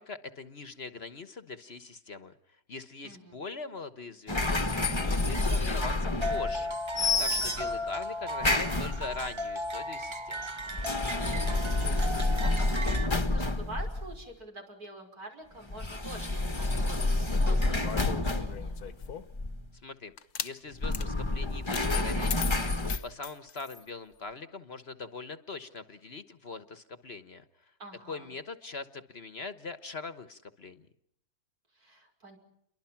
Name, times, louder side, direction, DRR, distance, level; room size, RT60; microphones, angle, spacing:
voice 1, 0.0-6.8 7.2-10.5 19.8-20.1 20.4-22.7 23.0-27.7 28.1-30.9, left 4 dB, 45° left, 11 dB, 1.4 m, -42 dB
voice 2, 3.0-3.4 11.5-12.5 12.8-13.0 13.3-18.8 27.8-28.3 31.8-32.4, right 2 dB, 80° right, 3 dB, 6.3 m, -46 dB
sound 1, 4.3-6.7 6.9-7.9 8.4-9.3 10.6-14.2 15.7-19.7 20.7-23.0, left 2 dB, 20° left, 1.3 m, -29 dB
sound 2, 6.2-13.1, equal, 20° right, 0.9 m, -36 dB
sound 3, 17.8-19.4 20.2-20.5 20.9-21.1 21.7-21.9 22.3-23.8, left 7 dB, 80° left, 1.7 m, -37 dB
29.5 x 23.5 x 5.9 m, 0.76 s
omnidirectional pair, 1.6 m